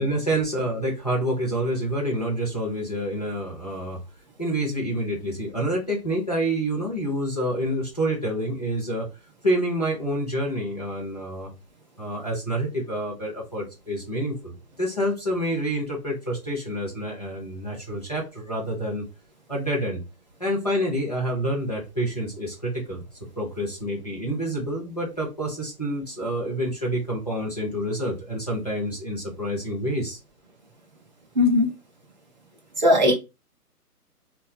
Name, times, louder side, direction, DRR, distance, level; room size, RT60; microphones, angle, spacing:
voice 1, 0.0-4.0 4.4-9.1 9.4-11.5 12.0-19.1 19.5-20.0 20.4-23.0 23.4-30.2, right 1 dB, 30° left, -4 dB, 0.4 m, -28 dB
voice 2, 31.4-31.7 32.8-33.1, left 1 dB, 30° right, 0 dB, 0.5 m, -18 dB
2.6 x 2.3 x 2.2 m, 0.27 s
hypercardioid pair, 155°, 47 cm